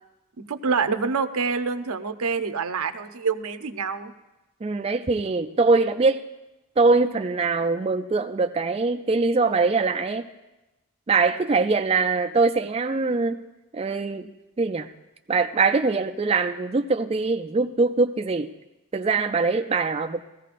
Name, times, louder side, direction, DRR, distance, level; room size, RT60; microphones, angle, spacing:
voice 1, 0.4-4.1, right 5 dB, 85° right, 8 dB, 0.7 m, -26 dB
voice 2, 4.6-6.2 6.8-10.3 11.1-13.4 13.7-14.3 14.6-14.9 15.3-18.5 18.9-20.2, right 3 dB, 25° right, 5 dB, 0.3 m, -22 dB
19.5 x 15.0 x 2.5 m, 1.0 s
head